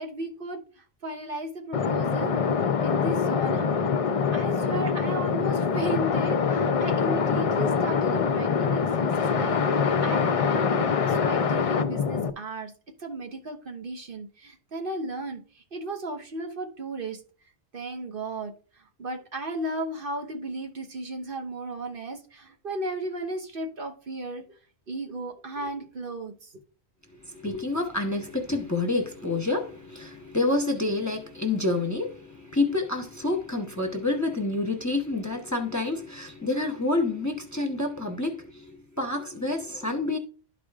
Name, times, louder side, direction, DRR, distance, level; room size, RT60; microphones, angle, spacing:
voice 1, 0.0-3.8 4.3-12.7 13.0-17.2 17.7-24.6 24.9-26.5, right 1 dB, 55° right, 1.2 m, -35 dB
sound 1, 1.7-12.3, left 6 dB, 45° left, 0.5 m, -24 dB
voice 2, 27.2-40.2, left 2 dB, 15° left, 0.8 m, -28 dB
12.0 x 4.9 x 2.4 m
omnidirectional pair, 1.1 m